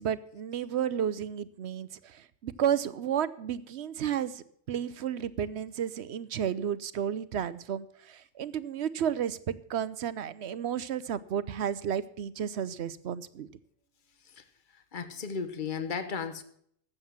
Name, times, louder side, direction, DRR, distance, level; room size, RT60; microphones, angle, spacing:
voice 1, 0.0-13.5, right 9 dB, 75° right, 1.0 m, -32 dB
voice 2, 14.9-16.4, left 6 dB, 50° left, 1.2 m, -34 dB
13.0 x 8.1 x 7.4 m
omnidirectional pair, 1.1 m